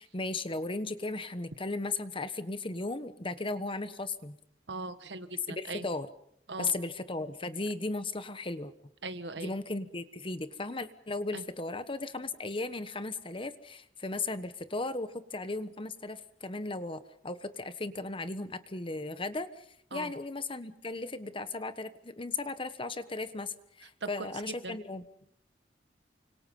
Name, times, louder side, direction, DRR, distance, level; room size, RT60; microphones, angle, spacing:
voice 1, 0.0-4.4 5.5-6.1 6.6-8.7 9.4-19.6 19.9-25.0, left 3 dB, 30° left, 12 dB, 1.3 m, -36 dB
voice 2, 4.7-5.9 6.5-6.7 9.0-9.5 11.3-11.4 19.9-20.1 24.0-24.8, right 3 dB, 75° right, 11 dB, 1.6 m, -40 dB
29.0 x 26.0 x 5.5 m, 0.70 s
head